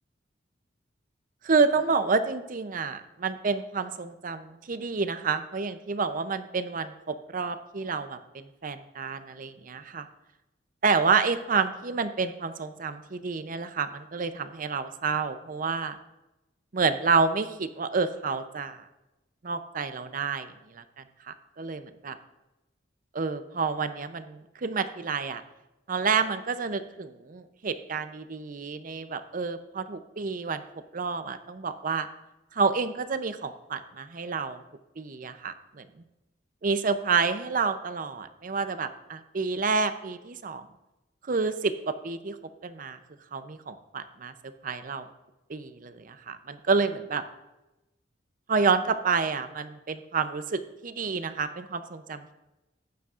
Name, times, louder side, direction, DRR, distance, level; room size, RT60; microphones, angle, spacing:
voice 1, 1.4-10.1 10.8-16.0 16.7-18.8 19.4-20.8 21.3-22.2 23.1-25.4 25.9-30.6 30.9-32.1 32.5-34.6 35.0-35.9 36.6-40.7 41.3-42.4 42.6-43.0 43.3-44.3 44.6-45.1 45.5-47.2 48.5-52.3, right 5 dB, 50° right, 10 dB, 0.6 m, -29 dB
15.0 x 10.0 x 2.5 m, 1.0 s
head